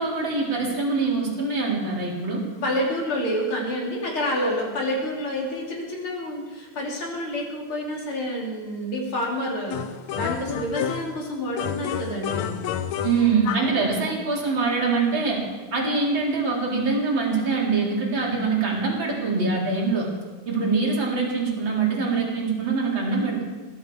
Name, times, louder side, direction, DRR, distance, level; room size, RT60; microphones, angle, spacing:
voice 1, 0.0-2.4 13.0-15.4 15.7-20.1 20.5-23.4, right 4 dB, 40° right, -3 dB, 4.3 m, -24 dB
voice 2, 2.5-12.7 13.5-13.8, equal, 45° left, -3 dB, 4.3 m, -28 dB
sound 1, 9.7-11.2 11.6-13.8, left 9 dB, 75° left, 2.0 m, -30 dB
20.5 x 14.5 x 4.8 m, 1.3 s
omnidirectional pair, 3.4 m